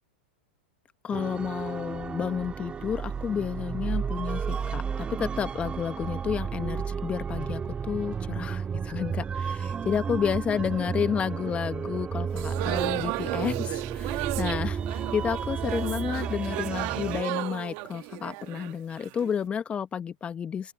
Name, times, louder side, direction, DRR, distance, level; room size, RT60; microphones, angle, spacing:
voice 1, 1.0-20.7, left 7 dB, 20° left, 1.0 m, -31 dB
sound 1, 1.1-17.2, right 6 dB, 20° right, 1.9 m, -33 dB
sound 2, 12.3-19.3, right 26 dB, 50° right, 2.3 m, -34 dB
open air
hypercardioid pair, 110°, 5 cm